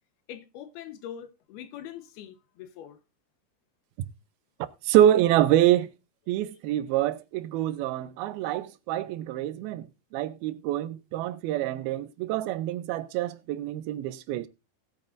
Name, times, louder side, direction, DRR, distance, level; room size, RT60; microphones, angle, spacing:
voice 1, 0.3-3.0, left 10 dB, 90° left, 3.1 m, -43 dB
voice 2, 4.8-5.9 6.3-14.5, right 12 dB, 85° right, 2.6 m, -26 dB
19.0 x 9.0 x 2.5 m
omnidirectional pair, 4.3 m